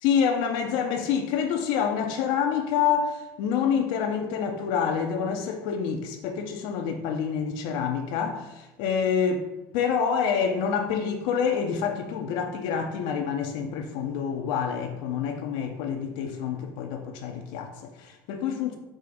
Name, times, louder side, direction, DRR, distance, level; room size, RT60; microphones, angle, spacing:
voice 1, 0.0-9.5 9.7-18.8, left 7 dB, 65° left, 0.4 m, -27 dB
4.8 x 2.1 x 3.8 m
hypercardioid pair, 80°, 10 cm